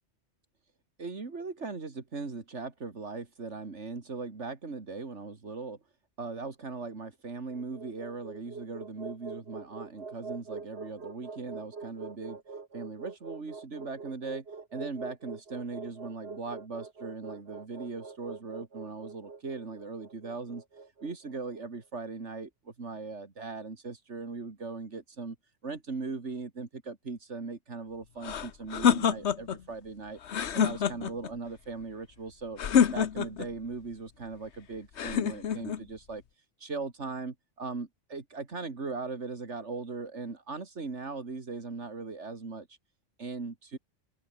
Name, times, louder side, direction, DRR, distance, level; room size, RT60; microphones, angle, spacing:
voice 1, 1.0-5.8 6.2-12.4 12.7-14.4 14.7-20.6 21.0-25.4 25.6-30.2 30.5-32.6 32.9-36.2 36.6-42.7 43.2-43.8, right 4 dB, 80° right, 2.7 m, -39 dB
sound 1, 7.5-21.6, right 4 dB, 60° right, 2.2 m, -44 dB
sound 2, 28.2-29.6 30.2-31.3 32.6-33.5 35.0-35.8, left 8 dB, 70° left, 1.3 m, -26 dB
omnidirectional pair, 1.2 m